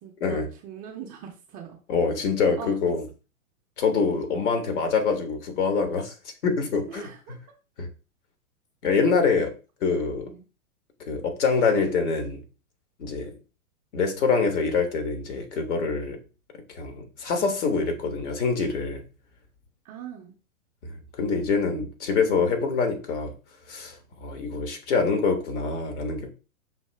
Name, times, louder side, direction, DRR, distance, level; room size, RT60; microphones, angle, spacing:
voice 1, 0.0-1.8 2.6-2.8 6.9-7.4 10.3-10.4 19.8-20.3, right 8 dB, 20° right, 0.4 m, -41 dB
voice 2, 1.9-3.0 3.8-6.1 6.4-7.1 7.8-7.9 8.8-9.5 9.8-10.3 11.1-12.4 13.0-13.3 13.9-16.2 16.7-19.0 20.8-23.3 23.7-26.3, left 4 dB, 55° left, 1.4 m, -25 dB
5.5 x 2.6 x 3.2 m
figure-of-eight pair, 110°, 43 cm